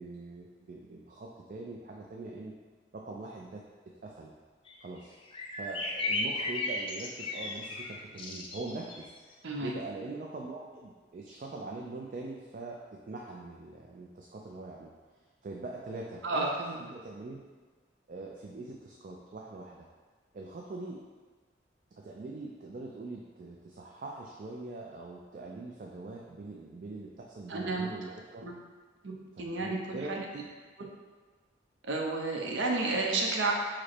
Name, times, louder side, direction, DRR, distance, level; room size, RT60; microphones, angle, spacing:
voice 1, 0.0-2.5 2.9-3.6 4.0-4.3 4.8-5.1 5.6-14.9 15.4-17.4 18.1-19.9 20.3-21.0 22.0-28.4 29.4-30.4, right 2 dB, 45° right, -1 dB, 0.3 m, -43 dB
sound 1, 4.7-4.8 5.0-5.1 5.3-9.0, left 2 dB, 30° left, 0.4 m, -35 dB
voice 2, 9.4-9.7 16.2-16.8 27.5-27.9 28.4-28.5 29.0-30.2 31.8-33.5, right 3 dB, 75° right, 0 dB, 0.7 m, -31 dB
4.9 x 2.1 x 4.3 m, 1.4 s
head